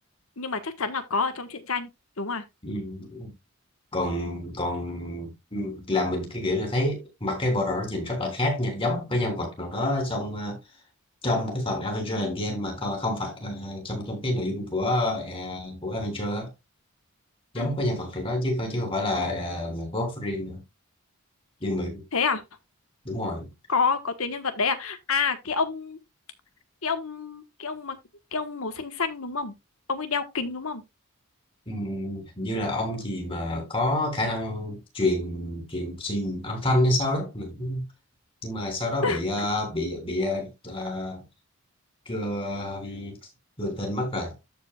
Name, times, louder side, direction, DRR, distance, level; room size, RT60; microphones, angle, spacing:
voice 1, 0.4-1.9 2.2-2.4 17.5-17.7 22.1-22.4 23.7-26.0 26.8-28.0 28.3-29.5 29.9-30.8 39.0-39.5, left 5 dB, 70° left, 1.5 m, -28 dB
voice 2, 2.6-3.3 3.9-10.6 11.2-16.5 17.5-20.6 21.6-22.0 23.1-23.5 31.7-37.9 38.4-41.2 42.1-43.2 43.6-44.4, left 1 dB, 25° left, 3.6 m, -28 dB
14.0 x 5.1 x 2.4 m
head